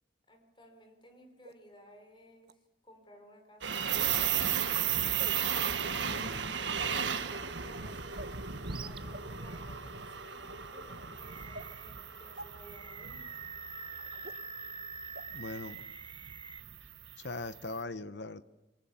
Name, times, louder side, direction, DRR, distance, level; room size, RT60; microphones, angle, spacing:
voice 1, 0.3-4.3 6.1-13.4, equal, 25° left, 5 dB, 5.1 m, -57 dB
sound 1, 1.4-1.5 2.4-2.5 3.9-4.2 5.2-5.3 6.1-6.4 7.3-7.6 8.2-8.4 9.1-9.2 9.8-10.0 10.8-10.9 11.5-11.7 12.4-12.5 13.3-13.4 14.2-14.3 15.2-15.3 15.8-15.9, right 1 dB, 60° right, 1.2 m, -46 dB
sound 2, 3.6-17.7, right 8 dB, 80° right, 1.6 m, -35 dB
voice 2, 5.8-6.5 15.3-15.9 17.2-18.4, left 3 dB, 70° left, 14 dB, 1.0 m, -41 dB
Animal, 8.6-9.0 9.5-9.6 11.2-12.0 12.6-16.6, right 5 dB, 25° right, 0.8 m, -46 dB
27.5 x 23.5 x 7.1 m, 1.0 s
head